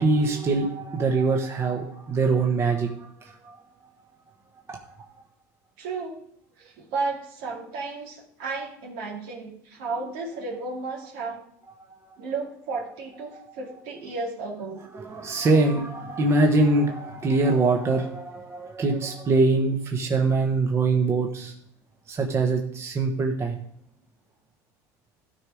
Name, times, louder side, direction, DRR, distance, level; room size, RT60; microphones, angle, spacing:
voice 1, 0.0-2.9 3.2-3.6 4.7-4.8 11.8-12.1 14.9-21.5 22.1-23.6, right 3 dB, 30° right, 2 dB, 1.3 m, -23 dB
voice 2, 5.8-6.2 6.6-11.4 12.2-14.8, right 3 dB, 75° right, -2 dB, 2.6 m, -33 dB
13.0 x 4.8 x 5.0 m, 0.70 s
supercardioid pair, 100°, 9 cm